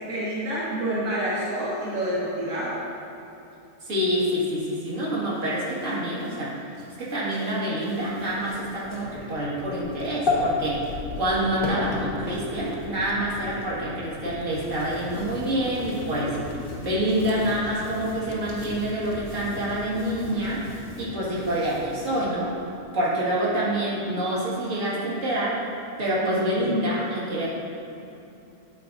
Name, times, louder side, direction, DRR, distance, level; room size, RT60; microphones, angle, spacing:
voice 1, 0.0-2.8 26.2-26.8, right 1 dB, 90° right, -9 dB, 2.2 m, -28 dB
voice 2, 3.8-6.5 7.0-10.9 11.2-16.3 16.8-20.6 21.0-22.5 22.9-25.6 26.0-27.5, right 1 dB, 65° right, -8 dB, 2.6 m, -27 dB
sound 1, 5.3-13.7 14.3-22.1, left 2 dB, 40° left, 1.6 m, -36 dB
sound 2, 7.9-22.9, left 4 dB, 80° left, 1.1 m, -39 dB
11.0 x 8.9 x 2.8 m, 2.9 s
omnidirectional pair, 1.4 m